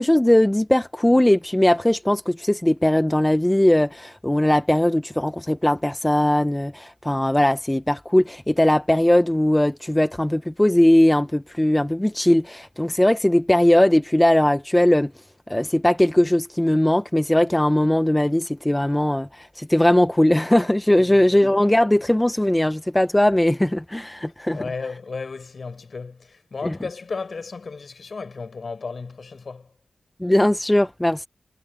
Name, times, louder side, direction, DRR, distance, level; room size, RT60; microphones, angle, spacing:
voice 1, 0.0-15.1 15.5-24.7 26.6-26.8 30.2-31.3, left 1 dB, 10° left, 0.8 m, -19 dB
voice 2, 24.5-29.7, left 4 dB, 60° left, 7.4 m, -34 dB
wide cardioid pair, 90°, 0 cm